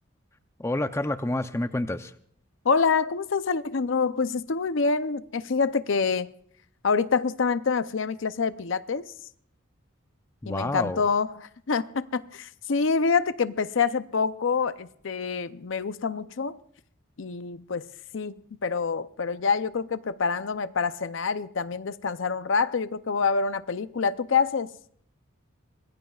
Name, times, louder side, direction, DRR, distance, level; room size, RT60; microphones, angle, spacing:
voice 1, 0.6-2.1 10.4-11.0, left 1 dB, 15° left, 0.6 m, -28 dB
voice 2, 2.6-6.3 6.8-9.0 10.5-16.6 17.2-17.9 18.1-24.7, left 5 dB, 65° left, 0.6 m, -26 dB
25.0 x 20.0 x 2.4 m
head